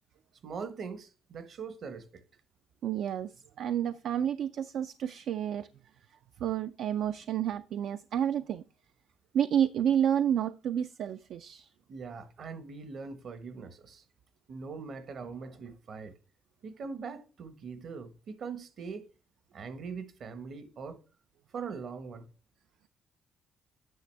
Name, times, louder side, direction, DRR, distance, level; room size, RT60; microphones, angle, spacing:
voice 1, 0.4-2.2 11.9-14.0 14.5-16.2 16.6-19.1 19.5-21.0 21.5-22.3, right 5 dB, 60° right, 1.2 m, -41 dB
voice 2, 2.8-3.3 3.6-5.7 6.4-8.6 9.3-11.7, right 9 dB, 75° right, 0.4 m, -30 dB
9.3 x 6.2 x 3.4 m
cardioid pair, 90°, 0 cm